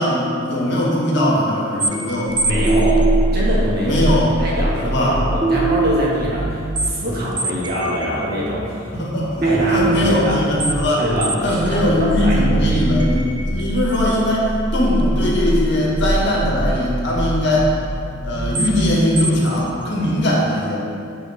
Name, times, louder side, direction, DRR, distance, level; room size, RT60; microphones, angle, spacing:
voice 1, 0.0-2.3 3.8-4.4 4.8-5.2 8.9-11.0 11.4-17.7 18.2-20.8, left 1 dB, 60° left, -4 dB, 2.0 m, -20 dB
sound 1, 1.8-20.2, right 2 dB, 25° right, 0.5 m, -23 dB
voice 2, 2.4-3.0 3.3-4.0 4.4-8.8 9.4-10.4 11.0-12.8, equal, 55° right, -6 dB, 2.2 m, -24 dB
13.5 x 5.7 x 3.7 m, 2.5 s
head